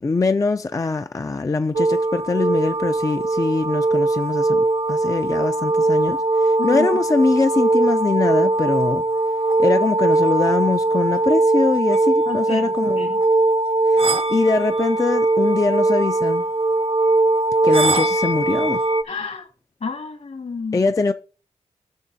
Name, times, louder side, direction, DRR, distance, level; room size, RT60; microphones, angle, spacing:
voice 1, 0.0-9.0 9.6-13.1 13.9-16.5 17.6-18.8 20.7-21.1, left 3 dB, 25° left, 0.4 m, -22 dB
sound 1, 1.7-19.0, right 2 dB, 50° right, 0.6 m, -20 dB
voice 2, 12.3-13.2 19.0-19.5 19.8-20.9, left 5 dB, 65° left, 1.9 m, -30 dB
16.5 x 6.1 x 2.7 m
cardioid pair, 60°, 13 cm